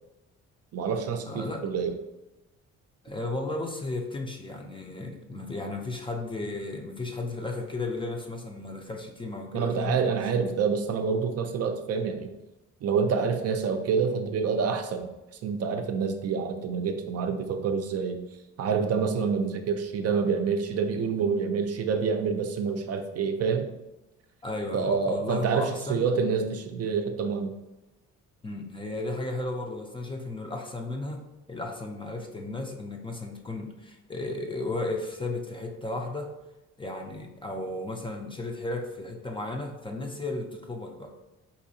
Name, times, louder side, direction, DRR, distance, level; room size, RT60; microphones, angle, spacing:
voice 1, 0.7-1.9 9.5-12.3 12.8-15.1 15.4-18.2 18.6-23.7 24.7-27.5, right 5 dB, 55° right, 5 dB, 0.5 m, -27 dB
voice 2, 1.3-1.6 3.0-10.3 24.4-26.1 28.4-31.2 31.5-36.3 36.8-41.1, left 2 dB, 15° left, 2 dB, 0.4 m, -34 dB
4.1 x 2.6 x 2.6 m, 0.99 s
cardioid pair, 90°, 30 cm